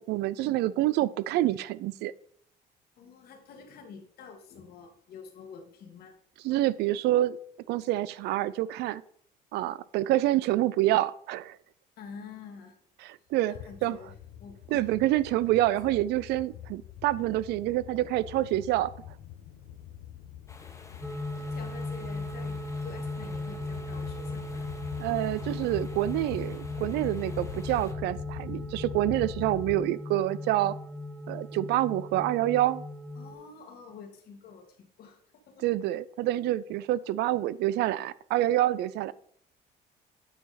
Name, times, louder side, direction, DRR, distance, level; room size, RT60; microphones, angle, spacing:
voice 1, 0.0-2.1 6.4-7.4 7.7-9.0 9.5-11.6 13.0-13.5 13.8-14.0 14.7-18.9 25.0-30.8 31.3-32.8 35.6-39.1, right 15 dB, 80° right, 19 dB, 0.4 m, -27 dB
voice 2, 3.0-6.1 12.0-12.8 13.5-14.1 14.4-14.9 15.6-16.0 20.9-21.0 21.3-24.7 33.1-35.2 35.5-35.7, left 5 dB, 65° left, 5 dB, 1.7 m, -48 dB
sound 1, 13.5-29.7, left 11 dB, 90° left, 0.8 m, -43 dB
sound 2, 20.5-27.9, left 2 dB, 15° left, 1.3 m, -51 dB
sound 3, 21.0-33.3, left 2 dB, ahead, 1.4 m, -38 dB
9.0 x 4.8 x 4.1 m, 0.63 s
cardioid pair, 110°, 17 cm